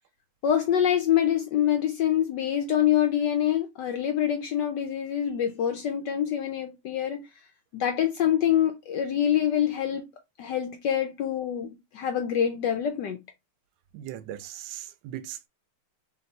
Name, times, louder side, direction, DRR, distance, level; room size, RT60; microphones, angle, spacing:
voice 1, 0.4-7.3 7.7-10.1 10.4-13.2, left 10 dB, 75° left, 1.0 m, -25 dB
voice 2, 13.9-15.5, right 12 dB, 75° right, 1.2 m, -39 dB
3.5 x 2.9 x 3.9 m
omnidirectional pair, 2.4 m